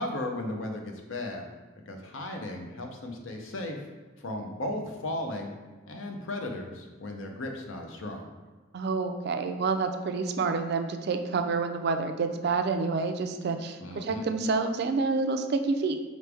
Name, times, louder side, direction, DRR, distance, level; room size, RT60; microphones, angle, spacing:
voice 1, 0.0-1.5 1.9-3.8 4.2-5.5 5.8-8.3 13.8-14.3, left 1 dB, 75° left, 3 dB, 0.7 m, -35 dB
voice 2, 8.7-16.0, right 4 dB, 55° right, 6 dB, 0.4 m, -28 dB
5.0 x 3.1 x 3.4 m, 1.3 s
head